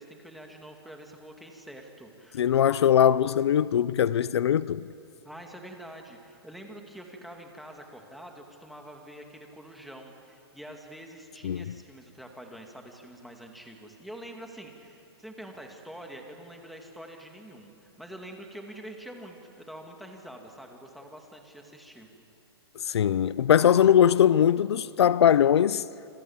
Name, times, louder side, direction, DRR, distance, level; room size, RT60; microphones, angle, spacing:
voice 1, 0.0-2.8 5.2-22.1, right 1 dB, ahead, 2.2 m, -46 dB
voice 2, 2.4-4.8 11.4-11.6 22.9-25.8, left 9 dB, 80° left, 0.6 m, -21 dB
28.0 x 25.0 x 7.3 m
hypercardioid pair, 160°, 14 cm